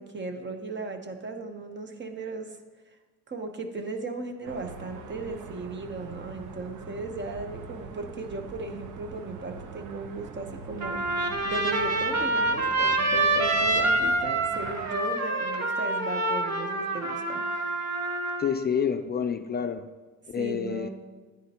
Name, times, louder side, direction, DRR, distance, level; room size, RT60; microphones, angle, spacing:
voice 1, 0.0-2.6 3.3-17.5 20.4-20.9, right 3 dB, 40° right, 6 dB, 1.0 m, -36 dB
sound 1, 4.4-14.9, right 5 dB, 90° right, 0.7 m, -43 dB
Trumpet, 10.8-18.5, right 2 dB, 65° right, 1.4 m, -26 dB
voice 2, 18.4-19.9 20.3-20.9, left 7 dB, 35° left, 8 dB, 0.4 m, -28 dB
10.5 x 9.6 x 2.9 m, 1.3 s
cardioid pair, 90°, 30 cm